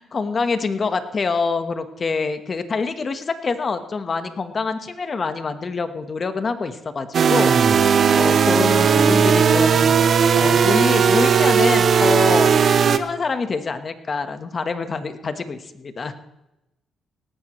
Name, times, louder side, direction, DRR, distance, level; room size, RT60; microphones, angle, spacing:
voice 1, 0.0-7.6 8.1-10.1 10.3-12.6 12.9-16.1, left 4 dB, 40° left, 9 dB, 1.3 m, -26 dB
sound 1, 7.1-13.0, right 6 dB, 55° right, 0.8 m, -16 dB
18.0 x 14.0 x 3.2 m, 0.93 s
cardioid pair, 90°, 0 cm